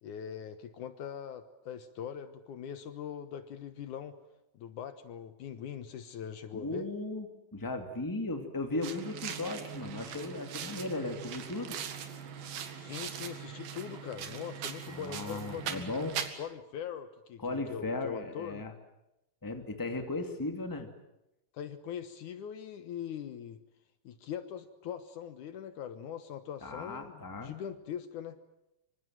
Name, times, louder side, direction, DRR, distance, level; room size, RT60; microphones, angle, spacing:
voice 1, 0.0-4.2 4.5-6.9 12.8-15.9 16.4-18.7 21.5-23.6 24.0-28.4, left 8 dB, 70° left, 11 dB, 2.5 m, -42 dB
voice 2, 6.5-7.3 7.5-11.8 14.9-16.2 17.4-18.7 19.4-20.9 26.6-27.5, left 2 dB, 5° left, 6 dB, 1.9 m, -36 dB
sound 1, 8.8-16.3, right 8 dB, 85° right, 3.8 m, -40 dB
26.0 x 25.0 x 7.7 m, 0.90 s
omnidirectional pair, 4.0 m